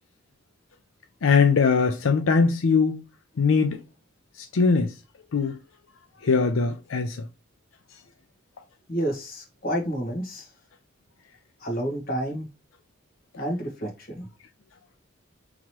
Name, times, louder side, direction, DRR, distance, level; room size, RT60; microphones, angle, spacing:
voice 1, 1.2-3.0 3.4-3.8 4.4-4.9 5.3-5.6 6.2-7.2, left 5 dB, 85° left, 0.5 m, -21 dB
voice 2, 8.9-10.5 11.6-12.5 13.4-14.3, right 1 dB, 45° left, 1.5 m, -29 dB
3.7 x 3.0 x 3.0 m
head